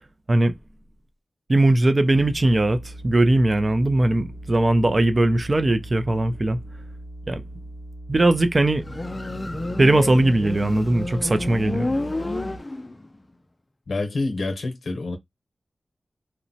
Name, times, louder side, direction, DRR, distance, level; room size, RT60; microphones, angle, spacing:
voice 1, 1.5-6.6 7.3-7.4 8.1-8.8 9.8-11.9, right 2 dB, 40° right, 0.4 m, -19 dB
sound 1, 2.1-12.6, right 1 dB, 5° left, 0.9 m, -40 dB
Motorcycle, 8.8-13.1, left 2 dB, 30° left, 0.3 m, -29 dB
voice 2, 13.9-15.2, left 3 dB, 85° left, 0.7 m, -27 dB
2.8 x 2.1 x 2.7 m
wide cardioid pair, 70°, 0 cm